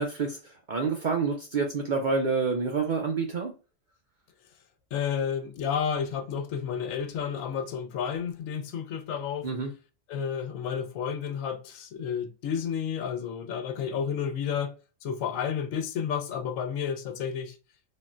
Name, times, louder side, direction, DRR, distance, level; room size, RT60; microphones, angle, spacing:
voice 1, 0.0-3.5 9.4-9.7, right 4 dB, 60° right, 0.5 m, -28 dB
voice 2, 4.9-9.5 10.1-14.7 15.0-17.6, left 7 dB, 85° left, 1.0 m, -31 dB
3.5 x 2.1 x 2.4 m
omnidirectional pair, 1.3 m